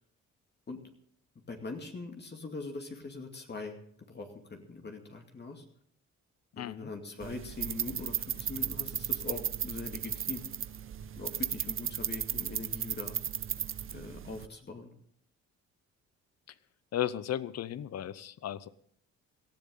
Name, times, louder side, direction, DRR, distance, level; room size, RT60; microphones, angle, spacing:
voice 1, 1.5-3.8 4.1-5.6 6.6-10.5 11.2-13.2 13.9-14.9, left 3 dB, 35° left, 3 dB, 2.5 m, -42 dB
voice 2, 6.6-6.9 16.9-18.7, left 11 dB, 60° left, 18 dB, 0.8 m, -35 dB
sound 1, 7.2-14.5, right 9 dB, 45° right, 0.8 m, -35 dB
18.0 x 14.0 x 3.9 m, 0.65 s
cardioid pair, 90°, 30 cm